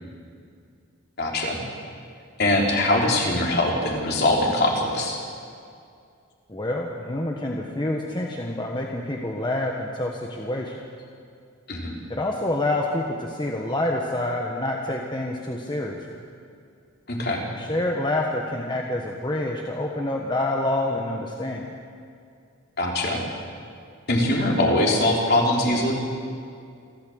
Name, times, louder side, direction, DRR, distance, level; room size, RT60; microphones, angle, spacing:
voice 1, 1.2-1.6 2.4-5.2 11.7-11.9 17.1-17.4 22.8-23.2 24.1-25.9, left 1 dB, 50° left, -1 dB, 3.9 m, -22 dB
voice 2, 6.5-10.7 12.1-16.0 17.6-21.7, left 1 dB, 20° left, 0 dB, 1.3 m, -27 dB
27.5 x 13.0 x 7.9 m, 2.3 s
head